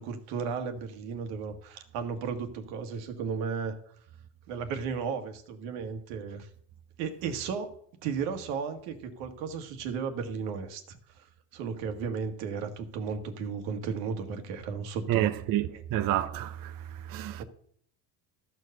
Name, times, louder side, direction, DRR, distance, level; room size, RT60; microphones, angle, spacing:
voice 1, 0.0-3.8 4.5-6.5 7.0-7.7 8.0-11.3 11.5-15.3 15.7-15.8 17.4-17.5, right 6 dB, 85° right, 1.8 m, -34 dB
voice 2, 15.1-17.4, right 13 dB, 50° right, 0.7 m, -29 dB
13.5 x 4.7 x 6.5 m
cardioid pair, 115°, 45 cm